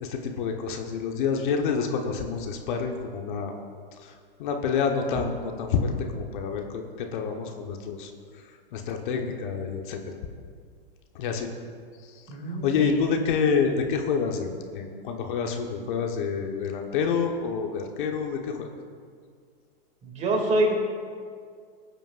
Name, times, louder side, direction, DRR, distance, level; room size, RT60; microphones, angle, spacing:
voice 1, 0.0-3.5 4.0-4.1 4.4-8.1 8.7-10.0 11.1-11.5 12.0-18.7, left 6 dB, 55° left, 3 dB, 1.3 m, -28 dB
voice 2, 12.3-12.9 20.0-20.7, right 1 dB, 25° right, 1 dB, 2.6 m, -25 dB
19.5 x 9.0 x 2.6 m, 2.1 s
hypercardioid pair, 115°, 30 cm